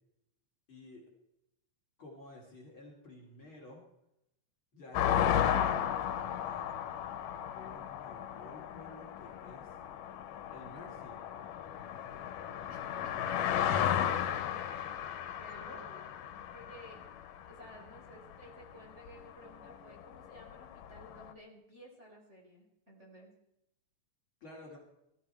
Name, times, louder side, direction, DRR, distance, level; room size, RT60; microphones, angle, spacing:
voice 1, 0.7-1.0 2.0-3.8 4.7-6.7 7.5-9.8 10.5-11.2 15.5-16.1 24.4-24.8, left 1 dB, 40° left, -2 dB, 3.4 m, -52 dB
sound 1, 4.9-18.0 18.8-18.9 19.1-21.3, left 9 dB, 85° left, 2.7 m, -34 dB
voice 2, 12.7-13.4 14.4-14.7 15.3-15.8 16.5-17.0 17.4-23.3, equal, 20° right, -2 dB, 4.4 m, -55 dB
20.5 x 13.5 x 4.5 m, 0.83 s
omnidirectional pair, 3.7 m